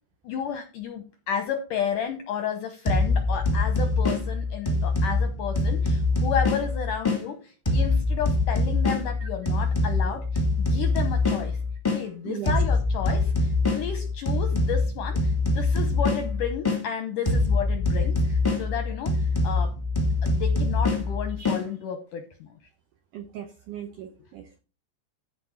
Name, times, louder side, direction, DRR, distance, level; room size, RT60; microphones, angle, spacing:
voice 1, 0.2-11.6 11.9-22.5, left 7 dB, 75° left, 7 dB, 1.9 m, -32 dB
sound 1, 2.8-7.2 7.6-12.0 12.4-16.8 17.2-21.6, left 2 dB, 10° left, 1.3 m, -24 dB
voice 2, 23.1-24.6, right 9 dB, 80° right, 6 dB, 1.9 m, -38 dB
14.0 x 4.8 x 5.6 m, 0.34 s
omnidirectional pair, 5.0 m